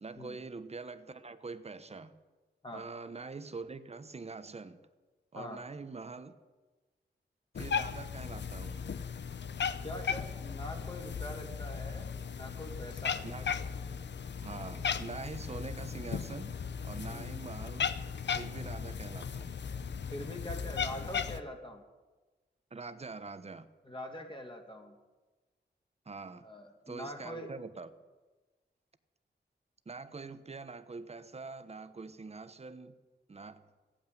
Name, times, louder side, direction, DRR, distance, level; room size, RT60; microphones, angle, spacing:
voice 1, 0.0-2.2 2.7-4.8 5.3-6.4 7.5-8.8 13.2-13.5 14.4-16.6 16.8-17.9 18.3-19.5 22.7-23.7 26.1-26.5 26.9-27.9 29.9-32.9 33.3-33.6, right 4 dB, 35° right, 0.9 m, -44 dB
Cat, 7.5-21.4, left 6 dB, 70° left, 0.7 m, -37 dB
voice 2, 9.8-13.2 17.1-17.3 20.1-21.8 23.8-25.0 26.4-27.5, left 1 dB, 25° left, 2.3 m, -44 dB
15.5 x 8.9 x 9.2 m
wide cardioid pair, 95°, 19 cm